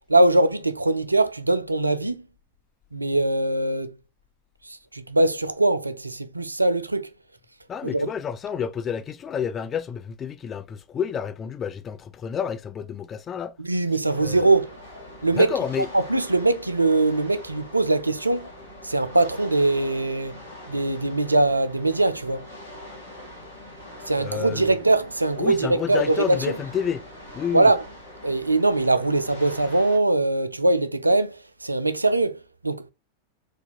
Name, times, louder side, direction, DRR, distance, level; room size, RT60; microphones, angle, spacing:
voice 1, 0.1-2.2 2.9-3.9 4.6-7.1 7.8-8.1 13.6-14.7 15.2-15.5 15.9-18.5 18.8-20.4 20.7-22.5 24.1-26.6 27.5-27.8 28.2-32.9, right 2 dB, 85° right, 0.3 m, -22 dB
voice 2, 7.7-13.5 14.2-14.5 15.3-15.9 24.2-24.7 25.4-27.1 27.3-27.7, left 7 dB, 25° left, 0.3 m, -30 dB
sound 1, 14.1-30.0, left 1 dB, 80° left, 1.7 m, -43 dB
4.2 x 2.5 x 2.3 m
figure-of-eight pair, 90°, 0 cm